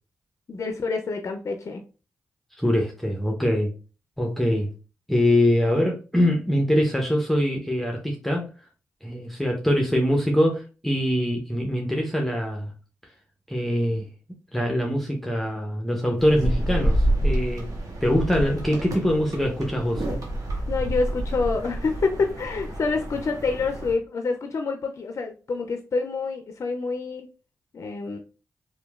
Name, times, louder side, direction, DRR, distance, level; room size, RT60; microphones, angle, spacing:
voice 1, 0.5-1.8 20.7-27.3 27.7-28.2, left 4 dB, 55° left, 0.4 m, -27 dB
voice 2, 2.5-3.7 4.2-4.7 5.1-8.5 9.0-12.7 13.5-14.1 14.5-17.7 18.0-20.0, equal, 5° left, 0.7 m, -23 dB
sound 1, 16.2-23.9, right 1 dB, 70° right, 0.9 m, -28 dB
2.9 x 2.2 x 2.3 m
supercardioid pair, 45°, 6 cm